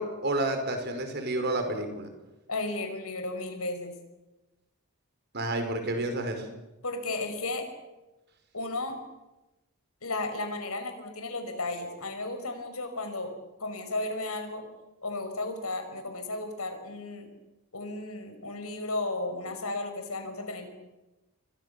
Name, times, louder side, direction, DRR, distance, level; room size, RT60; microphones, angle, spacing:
voice 1, 0.0-2.1 5.3-6.5, right 1 dB, 45° right, 6 dB, 5.2 m, -30 dB
voice 2, 2.5-3.9 6.8-7.7 8.5-9.0 10.0-13.3 13.6-14.6 15.0-17.3 17.7-20.7, left 2 dB, 80° left, 6 dB, 5.7 m, -34 dB
29.5 x 24.0 x 7.0 m, 1.0 s
head